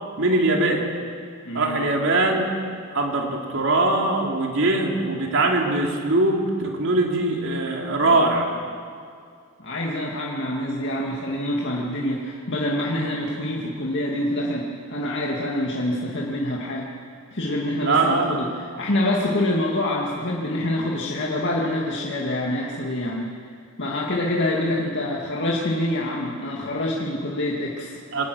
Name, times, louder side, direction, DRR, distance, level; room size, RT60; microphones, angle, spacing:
voice 1, 0.2-0.9 1.5-2.5 2.9-8.5 17.8-18.4 28.1-28.3, right 2 dB, 65° right, 1 dB, 3.2 m, -21 dB
voice 2, 1.5-1.8 9.6-16.9 17.3-23.3 23.8-28.0, left 1 dB, 60° left, -3 dB, 2.2 m, -26 dB
24.5 x 18.5 x 6.4 m, 2.2 s
head